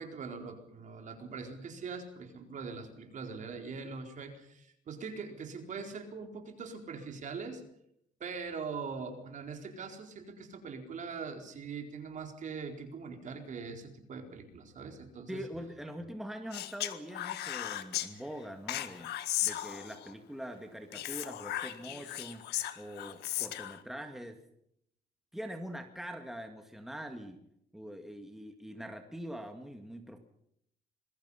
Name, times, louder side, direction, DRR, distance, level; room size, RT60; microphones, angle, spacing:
voice 1, 0.0-7.6 8.2-15.4, right 5 dB, 45° right, 4 dB, 4.4 m, -42 dB
voice 2, 15.3-19.1 19.4-22.4 22.8-24.4 25.3-27.4 27.7-30.2, equal, ahead, 5 dB, 2.1 m, -43 dB
Speech, 16.5-18.1 18.7-20.1 20.9-23.8, left 13 dB, 80° left, 1.7 m, -36 dB
27.0 x 22.0 x 5.7 m, 0.74 s
cardioid pair, 110°, 17 cm